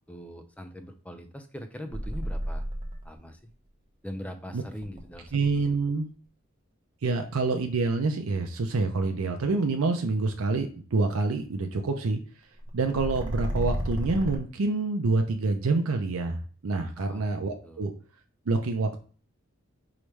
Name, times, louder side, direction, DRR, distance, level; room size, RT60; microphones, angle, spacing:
voice 1, 0.1-2.6 3.0-3.5 4.0-5.8 17.0-17.2 17.6-17.9, equal, 5° left, 7 dB, 0.5 m, -41 dB
sound 1, 1.9-3.2 4.8-5.7 12.7-14.4, equal, 20° right, 0.9 m, -31 dB
voice 2, 5.3-6.1 7.0-12.2 12.7-17.9 18.5-19.0, right 3 dB, 85° right, 5 dB, 0.5 m, -27 dB
4.9 x 3.0 x 3.2 m, 0.41 s
head